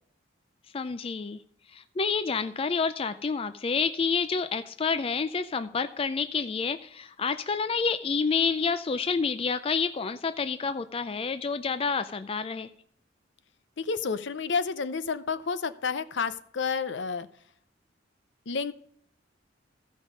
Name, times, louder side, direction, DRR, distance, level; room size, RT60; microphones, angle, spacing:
voice 1, 0.7-1.4 1.7-12.7, left 5 dB, 30° left, 11 dB, 0.4 m, -29 dB
voice 2, 13.8-17.3 18.5-18.7, left 5 dB, 65° left, 12 dB, 0.6 m, -30 dB
15.0 x 5.3 x 5.1 m, 0.67 s
head